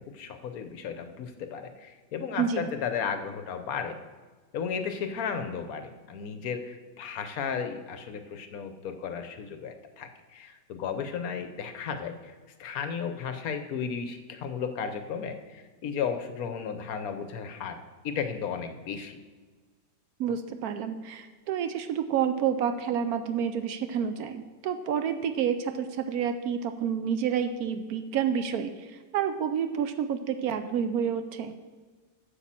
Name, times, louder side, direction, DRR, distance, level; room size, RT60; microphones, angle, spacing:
voice 1, 0.0-4.0 4.5-12.3 12.6-19.2, left 6 dB, 65° left, 8 dB, 1.0 m, -34 dB
voice 2, 2.4-2.7 20.2-31.5, right 8 dB, 70° right, 9 dB, 1.0 m, -29 dB
8.3 x 5.4 x 7.4 m, 1.4 s
omnidirectional pair, 1.8 m